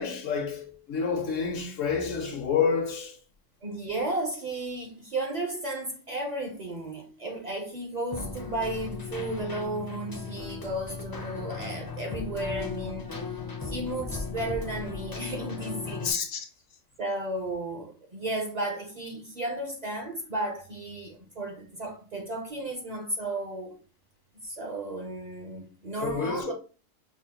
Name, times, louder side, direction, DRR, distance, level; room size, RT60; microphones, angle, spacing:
voice 1, 0.0-3.2 16.0-16.5 26.0-26.5, left 6 dB, 85° left, 1.2 m, -29 dB
voice 2, 3.6-13.1 13.6-16.1 17.0-23.8 24.4-26.5, right 2 dB, 45° right, 0.6 m, -34 dB
Keyboard (musical), 8.1-16.1, left 4 dB, 35° left, 0.3 m, -37 dB
5.7 x 2.1 x 2.8 m
omnidirectional pair, 1.3 m